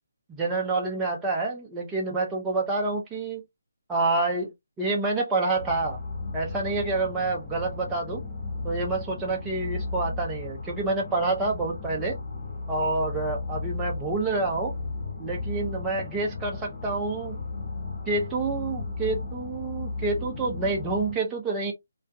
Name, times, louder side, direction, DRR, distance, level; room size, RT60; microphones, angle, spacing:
voice 1, 0.3-3.4 3.9-4.5 4.8-6.0 6.3-8.2 8.6-12.2 12.7-14.7 15.2-17.4 18.1-21.7, right 3 dB, 10° right, 0.5 m, -28 dB
sound 1, 5.5-21.1, left 3 dB, 25° left, 1.0 m, -35 dB
2.3 x 2.1 x 2.6 m
hypercardioid pair, 160°, 0 cm